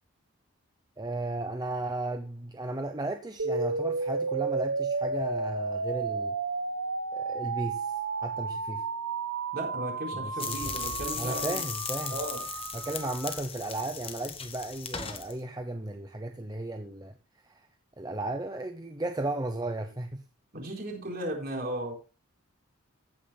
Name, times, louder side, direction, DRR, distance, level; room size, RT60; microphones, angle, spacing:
voice 1, 1.0-6.4 7.1-8.8 10.1-10.9 11.2-12.2 12.7-17.2 17.4-17.7 18.0-20.3, right 2 dB, 20° right, 6 dB, 0.7 m, -35 dB
sound 1, 3.4-13.4, right 4 dB, 75° right, 0.9 m, -33 dB
voice 2, 9.5-11.6 12.1-12.4 20.5-21.9, right 1 dB, 45° right, 1 dB, 4.1 m, -35 dB
sound 2, 10.4-15.3, left 7 dB, 25° left, 1.2 m, -37 dB
15.5 x 9.2 x 2.2 m, 0.32 s
head